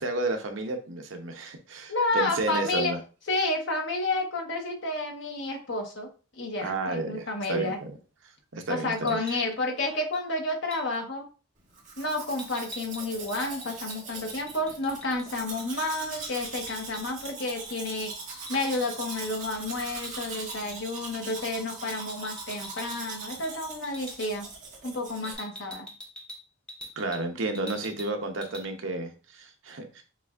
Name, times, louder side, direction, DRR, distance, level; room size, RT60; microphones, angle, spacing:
voice 1, 0.0-3.0 6.6-8.0 8.5-9.2 27.0-30.0, right 2 dB, 70° right, 5 dB, 0.8 m, -32 dB
voice 2, 1.9-2.9 3.3-6.1 6.4-7.8 8.7-11.3 12.0-18.1 18.5-24.5 24.8-25.9, left 2 dB, 60° left, 2 dB, 1.1 m, -30 dB
sound 1, 9.0-9.5 10.1-10.3 10.7-11.0 12.4-15.3 15.6-15.7 16.0-17.3 17.6-19.6 20.0-20.2 20.7-20.9 21.9-23.0 23.3-23.6 23.8-24.3 25.2-27.3 27.5-28.1 28.4-28.7, equal, 5° left, 0.5 m, -45 dB
Domestic sounds home sounds, 11.7-25.3, right 3 dB, 35° right, 1.6 m, -41 dB
6.6 x 2.6 x 2.5 m, 0.35 s
head